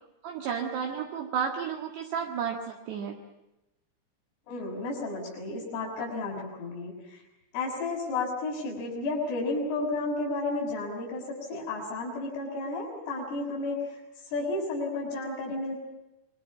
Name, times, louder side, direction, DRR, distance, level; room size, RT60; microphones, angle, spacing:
voice 1, 0.2-3.2, right 7 dB, 65° right, 1 dB, 3.4 m, -32 dB
voice 2, 4.5-7.2 7.5-14.0 14.3-15.8, left 2 dB, 80° left, -7 dB, 8.7 m, -32 dB
27.5 x 23.0 x 7.2 m, 0.97 s
omnidirectional pair, 6.0 m